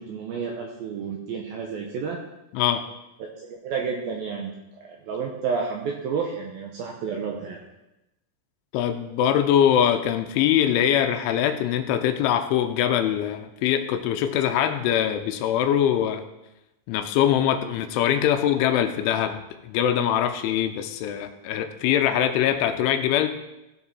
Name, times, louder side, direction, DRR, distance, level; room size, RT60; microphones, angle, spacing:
voice 1, 0.0-2.2 3.4-7.6, right 5 dB, 85° right, 0 dB, 2.1 m, -31 dB
voice 2, 2.5-2.9 8.7-16.2 16.9-23.3, left 10 dB, 85° left, 8 dB, 3.0 m, -23 dB
16.5 x 7.4 x 4.2 m, 0.93 s
omnidirectional pair, 5.7 m